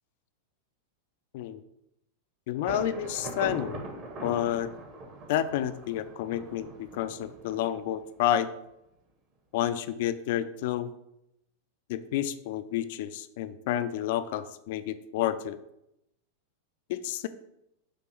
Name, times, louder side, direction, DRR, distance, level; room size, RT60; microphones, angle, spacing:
voice 1, 2.5-3.8 4.2-4.7 5.3-8.5 9.5-10.9 11.9-15.6 16.9-17.3, left 11 dB, 50° left, 12 dB, 0.4 m, -30 dB
Thunder, 2.7-8.3, right 2 dB, 35° right, 1.4 m, -41 dB
7.7 x 3.0 x 6.0 m, 0.84 s
figure-of-eight pair, 90°, 0 cm